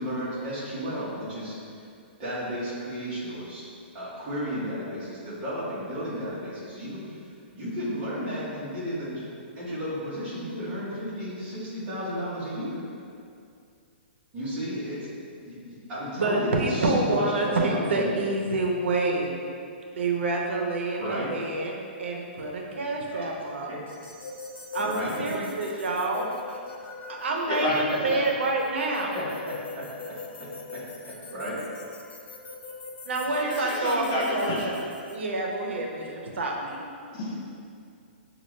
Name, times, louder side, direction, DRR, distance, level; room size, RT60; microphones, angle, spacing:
voice 1, 0.0-1.5 2.2-3.6 3.9-7.2 7.5-9.2 9.6-12.8 14.3-15.0 15.4-18.1 20.9-21.3 23.1-23.3 23.7-23.8 24.8-25.1 29.1-29.8 30.7-30.8 31.3-31.6, equal, 20° right, -10 dB, 1.2 m, -33 dB
voice 2, 16.2-19.4 19.9-21.7 22.0-23.7 24.7-26.3 27.1-29.2 33.0-34.8 35.1-36.8, right 2 dB, 90° right, 0 dB, 0.7 m, -27 dB
sound 1, 23.9-35.1, left 3 dB, 85° left, 0.7 m, -42 dB
voice 3, 27.5-28.2 33.3-34.7 37.1-37.3, left 1 dB, 20° left, -6 dB, 0.6 m, -30 dB
6.5 x 2.5 x 3.1 m, 2.4 s
hypercardioid pair, 175°, 6 cm